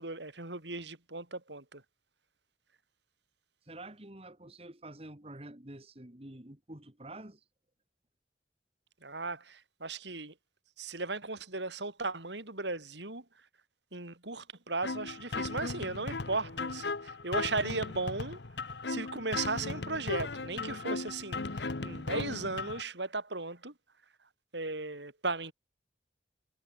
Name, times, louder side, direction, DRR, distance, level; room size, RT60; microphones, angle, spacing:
voice 1, 0.0-1.8 9.0-10.3 10.8-13.2 13.9-23.7 24.5-25.5, right 3 dB, 85° right, 5.3 m, -36 dB
voice 2, 3.7-7.4, right 1 dB, 35° right, 2.2 m, -48 dB
sound 1, 14.8-22.8, left 3 dB, 75° left, 1.2 m, -37 dB
head